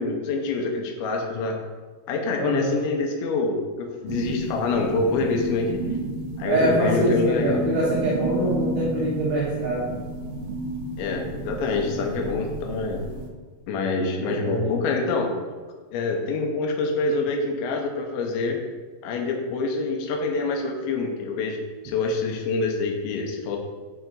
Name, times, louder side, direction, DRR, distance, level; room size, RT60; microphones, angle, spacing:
voice 1, 0.0-1.6 2.1-5.8 6.4-7.6 11.0-13.0 13.7-15.3 15.9-18.6 19.0-21.6 21.8-23.6, left 3 dB, 80° left, 1 dB, 3.1 m, -26 dB
voice 2, 2.3-2.7 6.4-9.9 11.9-12.0 14.2-14.7, right 1 dB, 65° right, -9 dB, 3.5 m, -24 dB
sound 1, 4.1-13.3, right 1 dB, 90° right, 3.0 m, -31 dB
7.8 x 5.0 x 3.9 m, 1.5 s
omnidirectional pair, 5.3 m